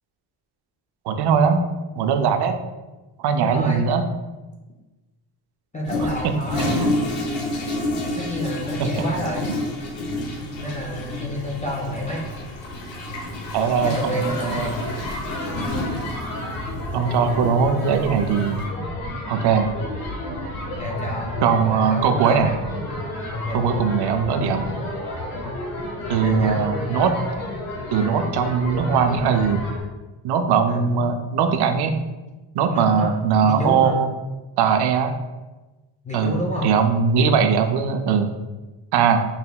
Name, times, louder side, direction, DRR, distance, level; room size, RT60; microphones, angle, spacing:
voice 1, 1.1-1.6 2.0-2.6 3.2-4.1 6.0-6.3 6.6-6.9 8.8-8.9 13.5-14.7 16.9-18.6 19.3-19.7 21.4-22.5 23.5-24.7 26.1-27.2 27.9-29.7 30.2-31.9 32.5-34.1 34.6-35.2 36.1-38.3 38.9-39.3, right 6 dB, 55° right, 7 dB, 0.5 m, -20 dB
voice 2, 3.3-3.9 5.7-6.8 8.2-9.5 10.4-12.2 14.0-14.8 20.7-22.5 23.3-23.6 26.1-26.6 30.7-31.1 32.7-33.1 33.4-34.1 36.0-36.7, left 1 dB, 15° left, -3 dB, 0.3 m, -29 dB
Toilet flush, 5.9-18.6, left 2 dB, 65° left, 1.0 m, -29 dB
sound 1, 14.1-29.8, left 1 dB, 80° left, 1.4 m, -31 dB
5.8 x 3.2 x 2.2 m, 1.2 s
cardioid pair, 135°, 49 cm